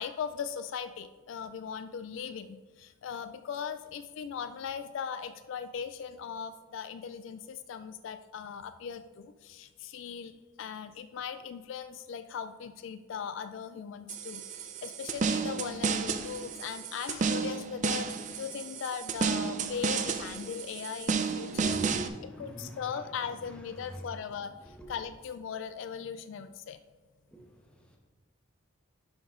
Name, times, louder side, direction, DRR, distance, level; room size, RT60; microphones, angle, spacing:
voice 1, 0.0-14.4 14.8-21.8 22.4-26.8, left 7 dB, 65° left, 11 dB, 0.3 m, -39 dB
sound 1, 14.1-22.1, right 5 dB, 35° right, 0.4 m, -32 dB
voice 2, 21.4-24.2 24.5-25.0 27.3-28.0, right 1 dB, 5° left, 0 dB, 1.0 m, -44 dB
10.5 x 4.1 x 3.7 m, 1.4 s
head